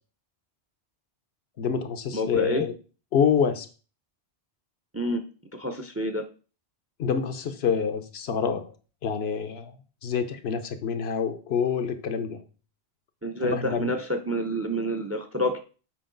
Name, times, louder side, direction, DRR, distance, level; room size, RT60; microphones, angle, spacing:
voice 1, 1.6-2.7 3.1-3.7 7.0-8.7 9.0-9.7 10.0-12.4 13.4-13.9, left 7 dB, 75° left, 1.0 m, -27 dB
voice 2, 2.1-2.7 4.9-5.2 5.5-6.2 13.2-15.6, equal, 20° right, 0.4 m, -28 dB
7.6 x 4.6 x 3.8 m
omnidirectional pair, 1.1 m